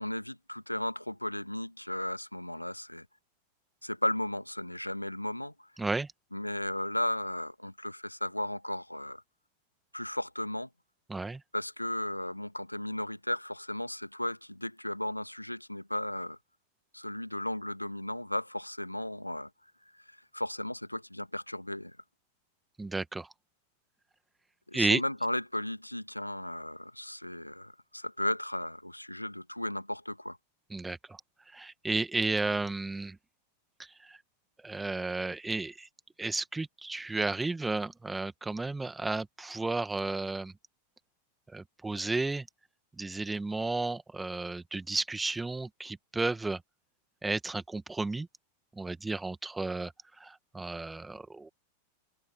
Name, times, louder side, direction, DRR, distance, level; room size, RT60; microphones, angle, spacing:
voice 1, 0.0-3.1 3.8-5.7 6.3-9.2 9.9-10.7 11.5-16.4 16.9-22.0 24.7-30.4, left 1 dB, 85° left, 2.3 m, -35 dB
voice 2, 11.1-11.4 22.8-23.3 24.7-25.0 30.7-31.2 31.5-33.2 34.0-34.2 34.6-35.9 36.2-40.5 41.5-42.5 43.0-46.6 47.2-48.3 48.8-49.9 50.2-51.5, right 3 dB, 10° right, 2.1 m, -33 dB
figure-of-eight pair, 90°, 0 cm